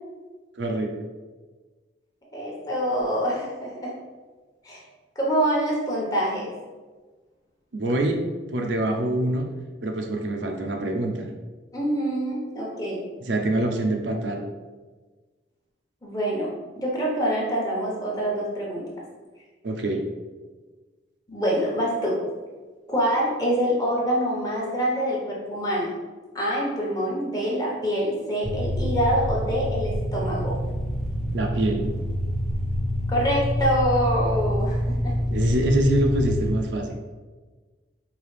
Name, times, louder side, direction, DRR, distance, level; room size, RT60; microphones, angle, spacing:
voice 1, 0.6-0.9 7.7-8.2 8.5-9.5 9.8-11.3 13.2-14.4 19.6-20.0 31.3-31.8 35.3-37.1, right 1 dB, 70° right, 3 dB, 0.5 m, -25 dB
voice 2, 2.3-3.9 4.6-4.8 5.2-6.5 11.7-13.0 16.0-18.9 21.3-22.2 22.9-25.9 26.3-30.6 33.1-35.2, equal, 20° left, -4 dB, 1.0 m, -25 dB
sound 1, 28.4-36.5, equal, ahead, 0.6 m, -26 dB
4.7 x 2.8 x 3.2 m, 1.3 s
head